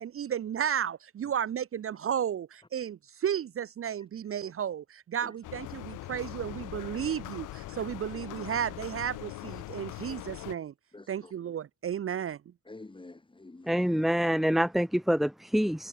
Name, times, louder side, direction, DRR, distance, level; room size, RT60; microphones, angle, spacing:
voice 1, 0.0-10.7 11.1-12.4, right 9 dB, 45° right, 0.8 m, -33 dB
sound 1, 5.4-10.6, left 16 dB, 90° left, 1.8 m, -41 dB
voice 2, 10.9-11.3 12.6-13.9, left 2 dB, 15° left, 4.3 m, -49 dB
voice 3, 13.7-15.9, equal, ahead, 0.7 m, -26 dB
cardioid pair, 90°, 30 cm